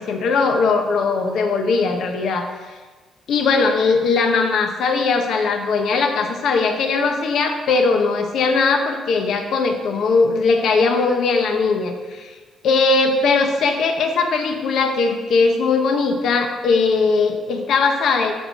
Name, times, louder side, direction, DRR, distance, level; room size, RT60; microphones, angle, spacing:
voice 1, 0.0-2.5 3.3-12.3 12.6-18.3, left 4 dB, 75° left, 4 dB, 1.1 m, -19 dB
13.0 x 5.6 x 4.3 m, 1.3 s
cardioid pair, 90°, 0 cm